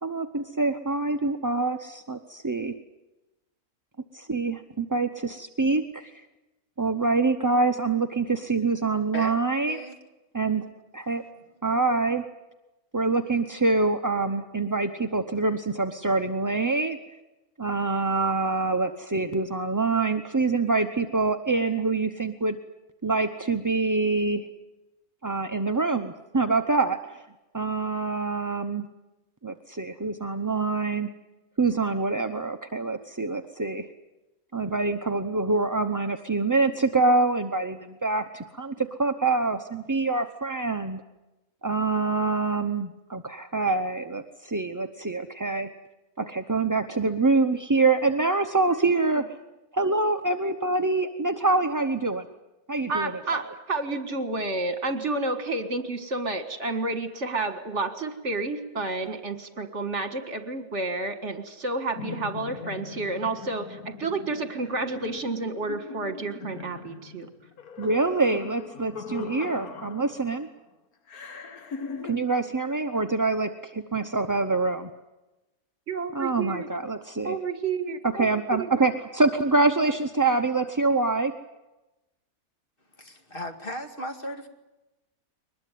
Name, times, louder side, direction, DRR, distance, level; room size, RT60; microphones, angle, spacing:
voice 1, 0.0-2.7 4.1-6.2 6.8-9.8 10.3-10.6 10.9-11.2 11.6-12.2 12.9-17.0 17.6-22.6 23.0-24.5 25.2-27.2 27.5-28.9 29.4-31.1 31.6-33.9 34.5-41.0 41.6-45.7 46.2-49.2 49.7-52.3 52.7-53.4 67.8-70.5 72.0-74.9 76.1-77.4 78.0-81.3, right 3 dB, 20° right, 6 dB, 0.6 m, -25 dB
voice 2, 9.7-10.0 11.4-11.5 83.0-84.5, left 1 dB, 40° left, 5 dB, 2.3 m, -36 dB
voice 3, 48.7-49.2 52.9-67.3 75.9-76.7 77.2-78.3 78.6-78.9, right 3 dB, 55° right, 8 dB, 2.1 m, -30 dB
sound 1, 62.0-70.5 71.1-72.2, left 5 dB, 80° left, 1.8 m, -40 dB
23.0 x 20.5 x 9.3 m, 1.0 s
omnidirectional pair, 1.5 m